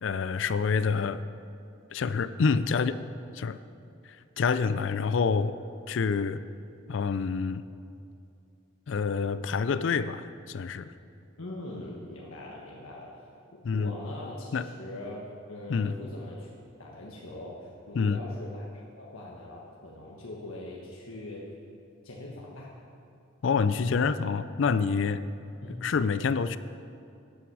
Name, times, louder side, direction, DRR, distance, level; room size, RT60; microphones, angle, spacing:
voice 1, 0.0-1.2 1.9-3.0 3.3-3.6 4.4-5.6 5.9-6.4 6.9-7.6 8.9-10.9 13.6-13.9 14.5-14.6 15.7-15.9 17.9-18.2 23.4-25.2 25.8-26.6, left 5 dB, 60° left, 13 dB, 0.4 m, -27 dB
voice 2, 11.4-13.1 13.5-16.5 16.8-18.7 19.0-21.4 22.0-22.7 25.6-25.8, left 1 dB, 85° left, -3 dB, 1.4 m, -41 dB
13.0 x 9.3 x 4.8 m, 2.5 s
head